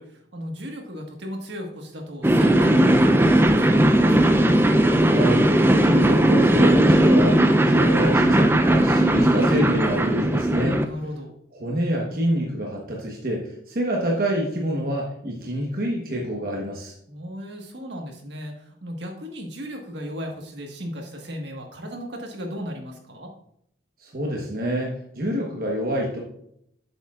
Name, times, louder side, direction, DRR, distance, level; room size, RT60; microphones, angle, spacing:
voice 1, 0.0-4.5 10.7-11.3 17.1-23.3, equal, 70° right, 2 dB, 1.5 m, -36 dB
sound 1, 2.2-10.9, right 1 dB, 10° right, 0.4 m, -17 dB
voice 2, 5.1-5.5 5.8-7.4 7.6-10.8 11.6-16.9 24.0-26.2, equal, 50° right, -2 dB, 1.1 m, -26 dB
7.8 x 7.1 x 2.4 m, 0.72 s
head